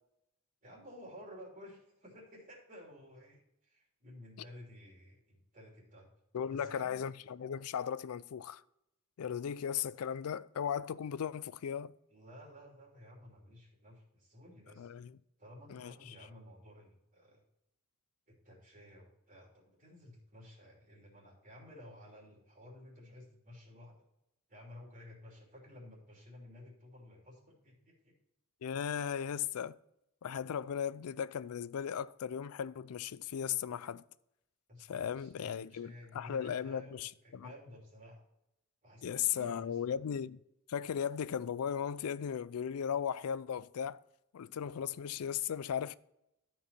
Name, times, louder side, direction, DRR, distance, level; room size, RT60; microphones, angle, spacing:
voice 1, 0.6-6.1 6.5-7.0 12.1-14.9 15.4-17.4 18.3-23.9 24.5-28.1 34.7-38.2 38.8-39.8, left 1 dB, 40° right, 2.9 m, -54 dB
voice 2, 6.3-8.6 9.2-11.9 14.8-15.2 15.7-16.2 28.6-29.8 30.2-34.0 34.9-37.5 39.0-40.4 40.7-44.0 44.3-46.0, left 8 dB, 80° left, 0.4 m, -37 dB
12.5 x 4.7 x 4.1 m
head